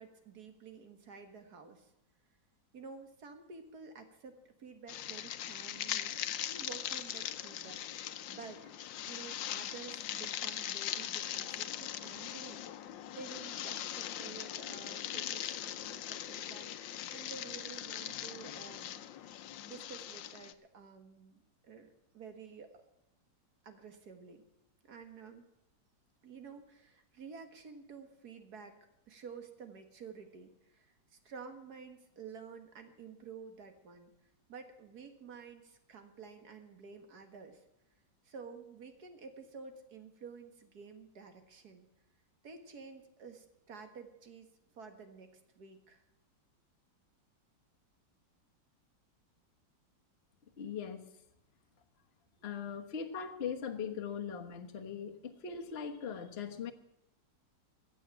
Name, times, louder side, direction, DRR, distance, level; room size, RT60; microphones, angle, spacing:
voice 1, 0.0-1.9 2.7-8.7 9.0-12.6 13.1-19.4 19.7-22.8 23.6-24.4 24.8-25.5 26.2-28.8 29.1-34.1 34.5-37.6 38.2-41.9 42.4-44.5 44.7-46.0, right 5 dB, 55° right, 7 dB, 2.1 m, -51 dB
sound 1, 4.9-20.5, left 11 dB, 80° left, 1.4 m, -40 dB
voice 2, 50.6-51.1 52.4-56.7, left 7 dB, 35° left, 3 dB, 1.4 m, -40 dB
15.5 x 7.3 x 8.7 m, 0.87 s
omnidirectional pair, 2.0 m